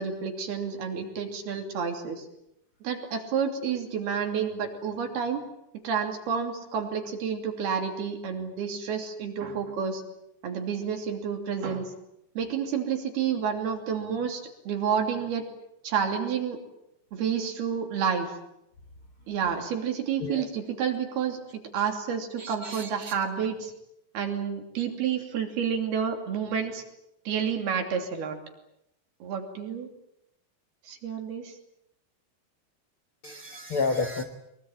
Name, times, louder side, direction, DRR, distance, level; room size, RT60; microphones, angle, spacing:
voice 1, 0.0-2.2 2.8-5.4 5.8-10.0 10.4-11.9 12.4-15.4 15.8-16.6 17.1-18.3 19.3-21.4 21.7-23.7 24.1-26.8 27.3-28.4 29.2-29.9 30.9-31.5, right 7 dB, 65° right, 4 dB, 4.7 m, -29 dB
voice 2, 22.3-23.1 33.2-34.2, left 3 dB, 75° left, 6 dB, 1.2 m, -31 dB
23.5 x 22.5 x 9.0 m, 0.83 s
omnidirectional pair, 5.0 m